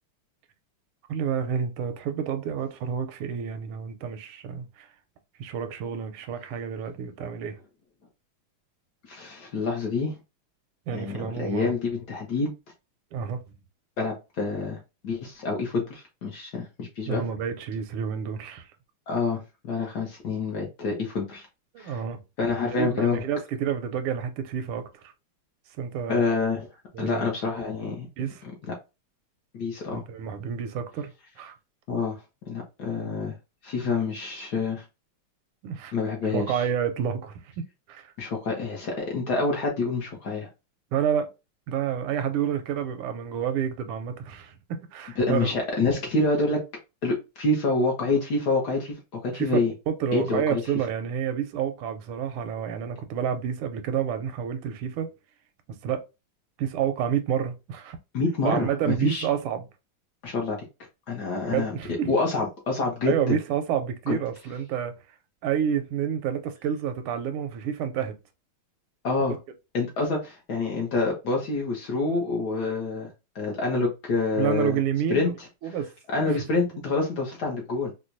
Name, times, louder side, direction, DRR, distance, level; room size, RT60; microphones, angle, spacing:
voice 1, 1.1-4.9 5.4-7.6 10.9-11.7 13.1-13.6 17.1-18.7 21.7-22.2 22.6-25.1 25.8-26.2 26.9-27.3 28.2-28.4 29.9-31.1 31.4-31.5 33.8-33.9 35.6-35.9 36.3-38.1 40.9-41.3 41.7-45.5 49.3-49.5 49.9-55.1 55.8-56.0 56.6-58.0 58.4-59.7 61.5-62.1 63.1-64.9 65.4-68.2 74.4-75.3 75.6-75.9 76.4-76.5, right 8 dB, 85° right, 1.5 m, -29 dB
voice 2, 9.1-10.1 10.9-12.5 14.0-17.2 19.1-21.5 21.8-22.0 22.4-23.2 26.1-26.7 27.0-28.1 29.5-30.0 31.9-32.2 32.5-33.3 33.6-34.8 35.9-36.6 38.2-40.5 45.2-46.6 47.0-49.7 50.1-50.6 58.1-59.2 60.2-60.6 61.1-61.7 62.1-63.4 64.1-64.2 69.0-69.4 69.7-73.1 73.3-74.8 75.1-75.3 76.1-77.9, left 3 dB, 60° left, 1.2 m, -27 dB
4.5 x 2.2 x 2.5 m
omnidirectional pair, 2.4 m